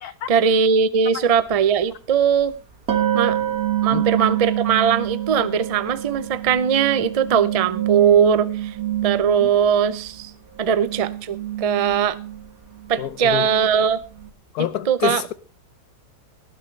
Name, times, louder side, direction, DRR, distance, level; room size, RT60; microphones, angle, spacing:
voice 1, 0.3-2.5 3.1-3.4 3.8-8.7 9.0-10.3 10.6-12.2 12.9-14.0 14.9-15.2, right 7 dB, 45° right, 0.4 m, -20 dB
sound 1, 1.4-1.5 2.9-10.3 10.6-14.3, right 12 dB, 65° right, 2.1 m, -27 dB
voice 2, 13.0-13.5 14.5-15.3, left 11 dB, 70° left, 1.3 m, -27 dB
18.5 x 11.0 x 3.3 m
omnidirectional pair, 1.7 m